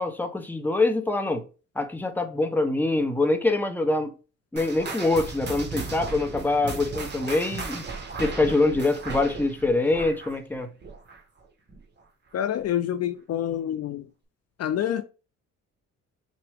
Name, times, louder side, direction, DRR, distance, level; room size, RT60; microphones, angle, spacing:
voice 1, 0.0-1.4 1.8-4.1 4.5-7.9 8.2-10.7, left 2 dB, 5° left, 0.8 m, -24 dB
sound 1, 4.6-11.4 11.7-12.0 12.6-12.7 13.5-13.6, right 3 dB, 35° right, 1.1 m, -36 dB
voice 2, 12.3-14.0 14.6-15.0, left 10 dB, 55° left, 0.5 m, -27 dB
5.9 x 2.2 x 3.4 m
cardioid pair, 90°, 30 cm